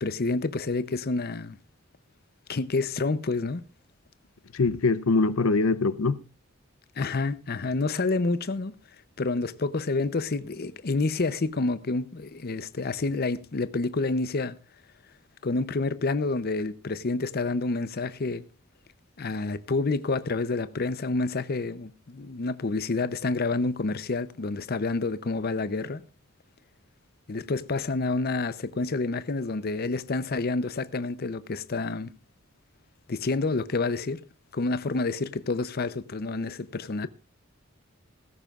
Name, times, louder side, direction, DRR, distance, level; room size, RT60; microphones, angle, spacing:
voice 1, 0.0-1.6 2.5-3.6 7.0-8.7 9.2-14.6 15.4-18.4 19.2-26.0 27.3-32.1 33.1-34.2 34.5-37.1, left 3 dB, 50° left, 0.7 m, -28 dB
voice 2, 4.5-6.2, left 3 dB, 85° left, 0.6 m, -23 dB
16.5 x 14.5 x 2.4 m
head